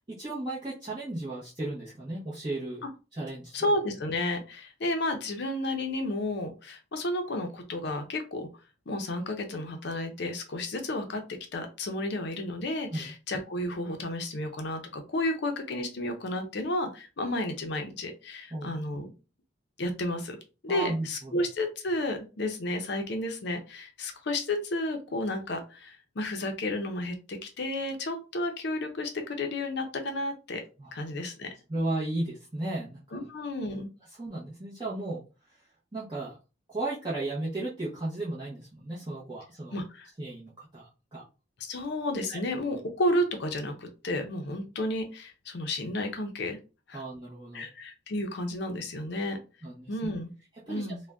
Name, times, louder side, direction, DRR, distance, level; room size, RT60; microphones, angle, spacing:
voice 1, 0.1-2.8 3.1-3.5 12.9-13.1 18.5-18.8 20.7-21.4 30.8-30.9 31.7-33.2 34.2-35.2 35.9-36.4 36.7-39.7 40.2-41.2 42.3-42.4 46.9-47.7 49.6-49.9 50.7-51.0, right 2 dB, 20° right, -8 dB, 0.7 m, -35 dB
voice 2, 3.5-8.5 8.9-11.2 11.5-19.1 19.8-20.4 20.6-27.2 27.4-30.6 30.9-31.5 33.1-33.9 39.7-40.1 41.6-46.6 46.9-47.0 47.5-49.4 49.9-50.3 50.7-51.0, left 1 dB, 55° left, 5 dB, 0.5 m, -32 dB
2.5 x 2.1 x 3.3 m, 0.31 s
head